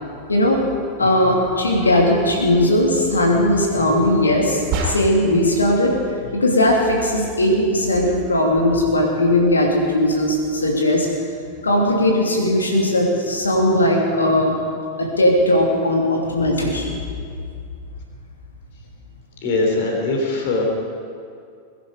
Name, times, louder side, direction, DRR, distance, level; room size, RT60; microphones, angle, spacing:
voice 1, 0.3-6.0 6.3-11.1 11.6-14.6 15.0-17.0, left 1 dB, 75° left, -1 dB, 2.9 m, -18 dB
sound 1, 4.7-5.4, right 3 dB, 45° right, 2.9 m, -25 dB
voice 2, 19.4-20.6, left 3 dB, 50° left, 0 dB, 3.7 m, -21 dB
22.0 x 11.0 x 5.1 m, 2.3 s
figure-of-eight pair, 90°, 0 cm